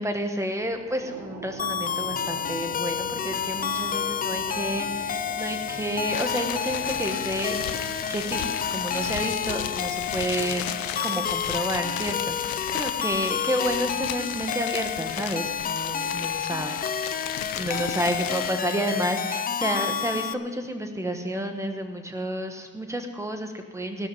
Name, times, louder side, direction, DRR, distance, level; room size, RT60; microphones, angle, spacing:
voice 1, 0.0-7.6 8.1-10.6 11.0-17.3 17.5-24.1, right 1 dB, 10° right, 6 dB, 1.1 m, -30 dB
sound 1, 0.6-13.2, right 3 dB, 60° right, 1.7 m, -42 dB
sound 2, 1.6-20.3, left 8 dB, 25° left, 0.5 m, -30 dB
sound 3, 6.1-18.7, left 11 dB, 80° left, 0.9 m, -35 dB
16.0 x 12.0 x 5.3 m, 1.5 s
cardioid pair, 165°, 35 cm